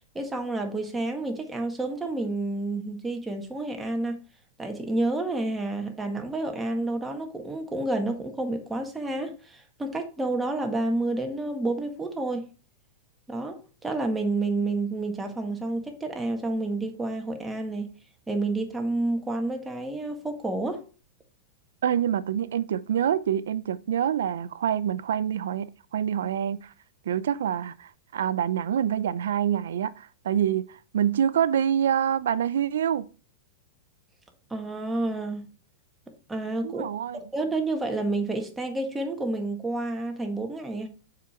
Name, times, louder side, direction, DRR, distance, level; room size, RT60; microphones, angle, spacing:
voice 1, 0.1-4.2 4.6-12.5 13.3-17.9 18.3-20.8 34.5-35.4 36.3-36.8 37.3-40.9, right 2 dB, 10° right, 1.6 m, -29 dB
voice 2, 21.8-26.7 27.1-33.1 36.6-37.2, right 9 dB, 80° right, 0.5 m, -26 dB
6.8 x 5.0 x 4.4 m
hypercardioid pair, 130°, 0 cm